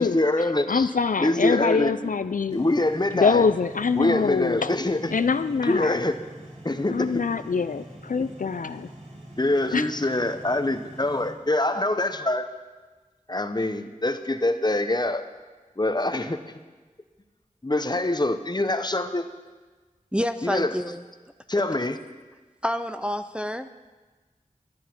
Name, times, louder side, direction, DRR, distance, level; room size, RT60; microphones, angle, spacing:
voice 1, 0.0-1.9 2.5-3.5 3.9-5.2 5.6-6.2 6.6-7.2 9.4-12.5 13.3-15.2 15.8-16.4 17.6-19.3 20.4-20.8 21.5-22.0, left 2 dB, 30° left, 9 dB, 0.8 m, -24 dB
voice 2, 0.7-2.7 3.2-4.7 5.1-6.0 6.9-8.9 9.7-9.8, left 5 dB, 70° left, 12 dB, 0.4 m, -24 dB
sound 1, 2.5-11.3, right 1 dB, 55° right, 3.4 m, -44 dB
voice 3, 20.1-21.0 22.6-23.9, equal, 5° right, 10 dB, 0.5 m, -29 dB
11.5 x 10.5 x 6.0 m, 1.3 s
wide cardioid pair, 50°, 14 cm